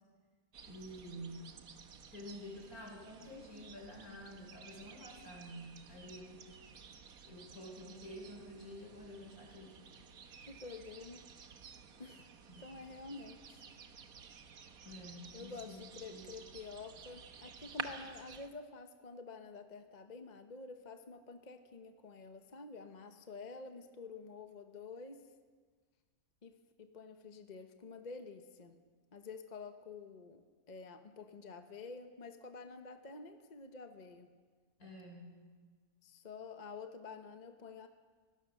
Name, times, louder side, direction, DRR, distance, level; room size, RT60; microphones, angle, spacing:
sound 1, 0.5-18.5, right 6 dB, 70° right, 1.6 m, -52 dB
voice 1, 0.6-1.5 2.1-6.5 7.2-9.9 12.5-12.6 14.8-16.3 34.8-35.3, equal, 75° left, 1 dB, 5.2 m, -49 dB
voice 2, 10.5-11.2 12.0-12.3 12.6-13.6 15.3-25.2 26.4-28.7 29.1-34.3 36.0-37.9, left 4 dB, 30° left, 7 dB, 1.1 m, -49 dB
24.5 x 17.5 x 6.5 m, 1.5 s
omnidirectional pair, 1.6 m